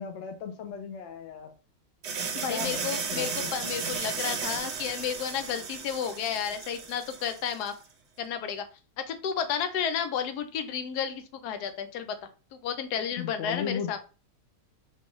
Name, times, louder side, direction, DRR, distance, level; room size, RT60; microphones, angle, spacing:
voice 1, 0.0-1.5 2.5-3.3 13.2-14.0, left 7 dB, 65° left, 4 dB, 0.7 m, -36 dB
sound 1, 2.0-7.7, right 5 dB, 60° right, 0.8 m, -35 dB
voice 2, 2.4-7.8 8.2-8.7 9.1-12.2 12.6-14.0, left 8 dB, 90° left, 8 dB, 1.2 m, -32 dB
4.4 x 2.4 x 3.0 m, 0.35 s
omnidirectional pair, 1.6 m